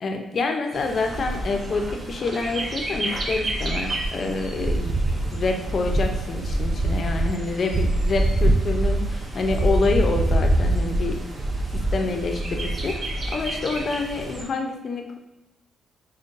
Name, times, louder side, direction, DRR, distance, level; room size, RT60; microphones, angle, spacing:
voice 1, 0.0-4.9 5.3-11.2 11.7-13.0 13.3-15.2, left 3 dB, 50° left, 4 dB, 0.5 m, -27 dB
Bird, 0.7-14.4, right 1 dB, 30° right, 0.6 m, -25 dB
5.2 x 2.2 x 2.5 m, 1.0 s
cardioid pair, 90°, 0 cm